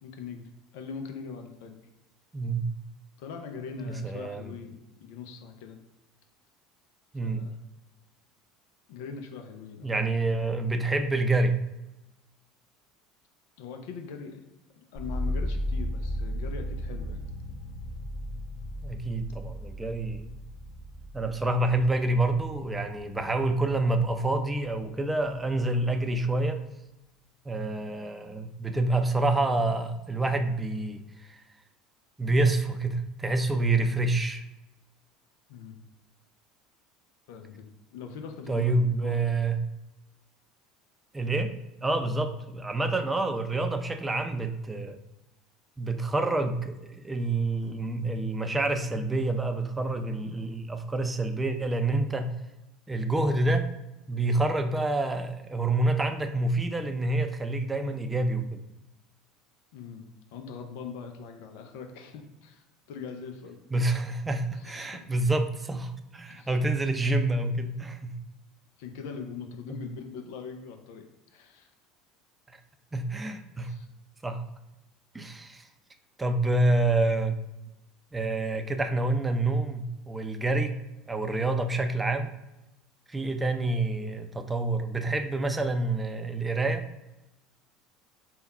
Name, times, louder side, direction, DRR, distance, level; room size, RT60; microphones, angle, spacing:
voice 1, 0.0-0.4 0.7-1.7 3.2-5.8 7.2-7.6 8.9-9.9 13.6-14.4 14.8-17.2 35.5-35.7 37.3-37.6 37.9-39.4 59.7-63.6 64.5-65.0 66.3-66.5 68.8-71.7 73.6-73.9, left 5 dB, 70° left, 5 dB, 0.5 m, -41 dB
voice 2, 3.8-4.5 7.1-7.4 9.8-11.6 18.8-20.3 21.1-26.6 27.5-31.4 32.2-34.4 38.5-39.6 41.1-41.5 41.8-45.0 45.8-52.3 52.9-53.7 54.1-58.6 63.7-68.1 69.7-69.8 72.9-73.7 74.2-74.4 75.1-75.7 76.2-77.4 78.1-80.8 81.1-82.3 83.1-86.8, right 2 dB, 15° right, 6 dB, 0.5 m, -27 dB
sound 1, 14.9-24.9 25.2-25.9, left 1 dB, 50° left, 1.0 m, -36 dB
3.5 x 2.2 x 4.1 m, 0.96 s
hypercardioid pair, 85°, 0 cm